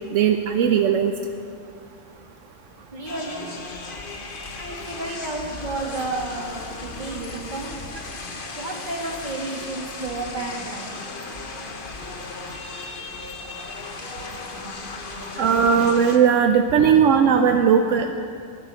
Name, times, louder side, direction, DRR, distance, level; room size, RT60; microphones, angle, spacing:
voice 1, 0.1-1.1 15.4-18.1, right 7 dB, 75° right, 6 dB, 1.0 m, -18 dB
voice 2, 2.9-3.5 4.6-7.7 8.6-10.9 15.1-15.2, right 2 dB, 35° right, -1 dB, 1.9 m, -32 dB
sound 1, 3.0-16.2, left 3 dB, 45° left, 1.2 m, -36 dB
11.5 x 11.5 x 6.3 m, 2.3 s
omnidirectional pair, 1.3 m